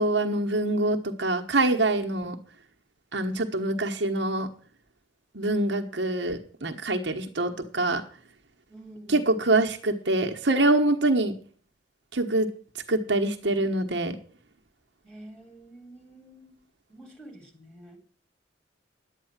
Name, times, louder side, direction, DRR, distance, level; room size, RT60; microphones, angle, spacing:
voice 1, 0.0-2.4 3.1-4.5 5.3-8.0 9.1-11.3 12.1-12.5 12.9-14.2, right 2 dB, 60° right, 3 dB, 1.2 m, -25 dB
voice 2, 8.7-9.3 15.0-16.6 16.9-18.0, right 1 dB, 5° left, 0 dB, 3.5 m, -47 dB
11.0 x 9.0 x 7.4 m, 0.43 s
head